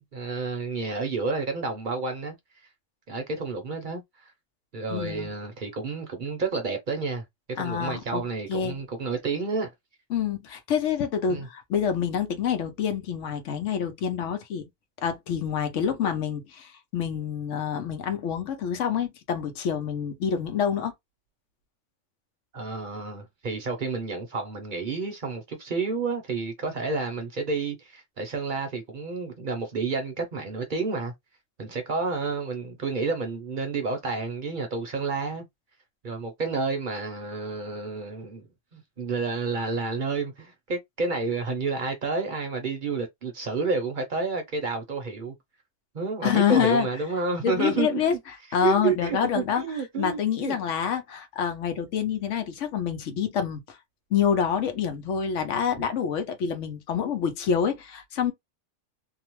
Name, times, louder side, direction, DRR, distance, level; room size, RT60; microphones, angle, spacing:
voice 1, 0.0-2.3 3.1-4.3 4.7-7.2 7.5-9.7 11.3-11.5 22.5-31.1 31.6-35.4 36.0-45.3 45.9-48.0 48.6-50.5, right 4 dB, 50° right, 0.7 m, -30 dB
voice 2, 4.9-5.3 7.6-8.2 8.5-8.8 10.1-14.7 15.0-20.9 46.2-46.9 47.4-48.1 48.5-49.6 50.0-53.8 54.1-58.3, left 7 dB, 80° left, 1.0 m, -27 dB
2.8 x 2.1 x 3.0 m
omnidirectional pair, 1.3 m